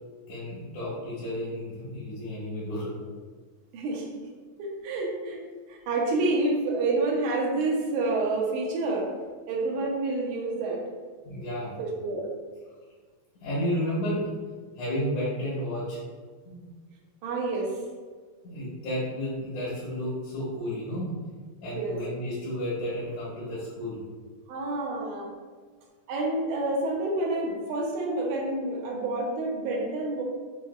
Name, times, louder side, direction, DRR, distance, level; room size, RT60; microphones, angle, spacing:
voice 1, 0.3-2.9 11.2-11.8 13.4-14.3 14.8-16.0 16.4-16.7 18.4-21.1 21.6-24.0 24.9-25.0, equal, 85° left, -10 dB, 2.9 m, -32 dB
voice 2, 3.7-4.1 4.6-5.4 5.7-9.1 9.5-10.8 11.8-12.3 17.2-17.8 21.6-22.0 24.5-25.3 26.1-30.2, right 2 dB, 80° right, -2 dB, 2.2 m, -28 dB
6.7 x 3.3 x 2.3 m, 1.5 s
omnidirectional pair, 3.5 m